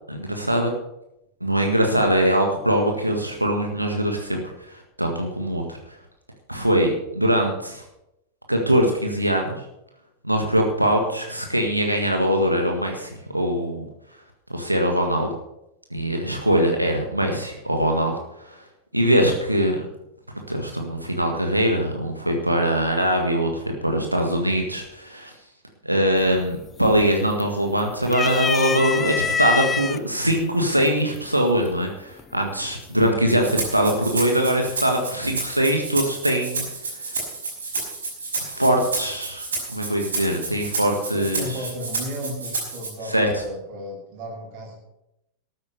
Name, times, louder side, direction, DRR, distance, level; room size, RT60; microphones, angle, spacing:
voice 1, 0.1-0.7 1.4-5.8 6.5-7.8 8.5-9.6 10.2-13.9 14.5-15.3 15.9-18.2 18.5-18.6 18.9-19.8 20.5-25.3 25.8-37.0 38.5-39.4 39.7-41.6 43.1-43.3, equal, 85° right, 2 dB, 1.7 m, -22 dB
sound 1, 26.2-26.6 27.0-27.7 28.1-30.0 30.9-31.0 32.2-32.6, left 6 dB, 20° left, 0.5 m, -25 dB
Rattle (instrument), 33.3-42.9, right 3 dB, 70° right, 5.5 m, -31 dB
voice 2, 41.1-44.8, equal, 45° right, 0 dB, 6.3 m, -34 dB
13.0 x 9.3 x 6.6 m, 0.86 s
figure-of-eight pair, 90°, 0 cm